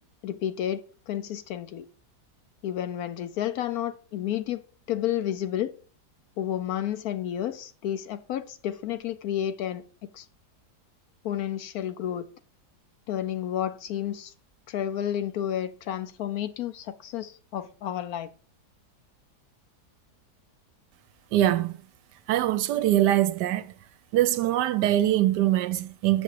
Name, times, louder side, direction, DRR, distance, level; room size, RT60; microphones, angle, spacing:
voice 1, 0.2-1.8 2.6-4.6 4.9-5.7 6.4-9.8 10.1-10.3 11.2-12.3 13.1-14.3 14.7-18.3, left 11 dB, 70° left, 1.0 m, -31 dB
voice 2, 21.3-21.8 22.3-23.7 24.1-26.2, right 13 dB, 85° right, 1.2 m, -23 dB
6.7 x 6.5 x 4.6 m
omnidirectional pair, 1.8 m